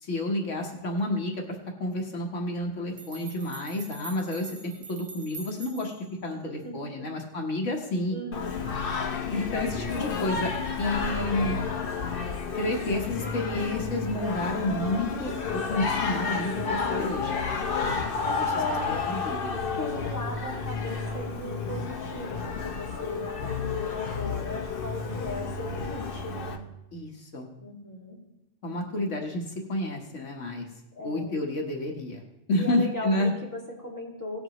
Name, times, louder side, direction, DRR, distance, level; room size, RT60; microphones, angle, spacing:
voice 1, 0.0-5.9 6.2-8.2 9.3-10.5 10.8-11.8 12.5-17.4 18.4-18.5 18.9-19.6 26.9-27.5 28.6-30.7 31.0-32.2 32.5-33.3, left 1 dB, 80° left, 1 dB, 1.5 m, -30 dB
sound 1, 3.0-6.1, right 5 dB, 85° right, 1.3 m, -44 dB
voice 2, 6.6-7.1 8.1-8.7 18.2-19.1 19.8-26.6 27.6-28.2 30.9-31.4 32.6-34.4, left 1 dB, 15° left, -3 dB, 2.2 m, -37 dB
Singing, 8.3-26.6, left 5 dB, 50° left, 1.0 m, -31 dB
18.0 x 8.1 x 3.0 m, 0.91 s
omnidirectional pair, 1.3 m